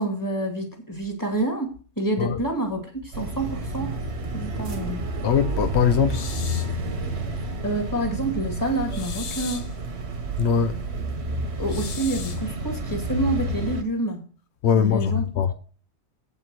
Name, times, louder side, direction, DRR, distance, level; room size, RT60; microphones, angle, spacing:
voice 1, 0.0-3.9 4.3-5.0 7.6-9.7 11.6-14.2 14.7-15.3, right 2 dB, 20° left, 2.2 m, -28 dB
sound 1, 3.1-13.8, right 2 dB, 80° right, 1.6 m, -30 dB
voice 2, 5.2-6.6 7.1-7.2 10.4-10.8 14.6-15.5, left 7 dB, 85° left, 1.0 m, -22 dB
sound 2, 6.1-6.8 8.9-9.8 11.7-12.5, left 7 dB, 50° left, 0.5 m, -37 dB
8.3 x 5.4 x 7.5 m
omnidirectional pair, 1.1 m